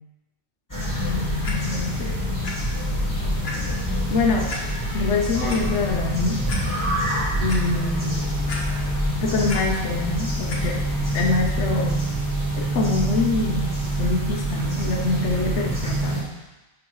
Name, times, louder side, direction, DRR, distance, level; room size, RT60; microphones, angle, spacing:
sound 1, 0.7-16.2, right 1 dB, 15° left, 2.0 m, -26 dB
sound 2, 1.0-11.9, left 1 dB, 55° right, 1.1 m, -32 dB
voice 1, 1.1-2.2 4.1-4.5 4.9-6.4 7.4-8.2 9.1-10.8 11.1-12.0 12.6-13.7 14.0-16.3, left 3 dB, 85° left, 1 dB, 1.1 m, -25 dB
Clock, 1.4-1.5 2.4-2.5 3.0-3.1 3.4-3.5 4.5-4.6 5.3-5.6 6.1-6.2 6.5-6.6 7.1-7.6 8.5-9.0 9.3-9.6 10.5-10.6 11.3-11.4, left 3 dB, 65° left, 1.1 m, -34 dB
10.0 x 3.6 x 3.1 m, 1.1 s
omnidirectional pair, 1.2 m